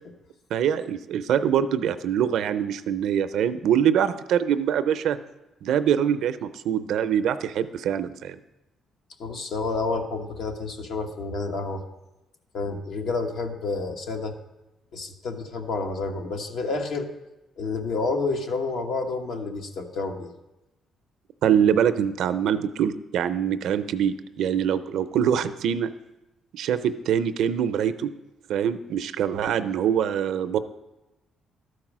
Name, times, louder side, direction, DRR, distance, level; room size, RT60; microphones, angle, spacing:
voice 1, 0.5-5.2 5.6-8.4 21.4-25.9 26.5-28.1 28.5-30.6, right 9 dB, 80° right, 12 dB, 0.5 m, -24 dB
voice 2, 9.2-11.8 12.5-14.3 14.9-17.1 17.6-20.3, left 3 dB, 70° left, 4 dB, 1.1 m, -29 dB
12.0 x 4.7 x 6.1 m, 0.99 s
cardioid pair, 90°, 0 cm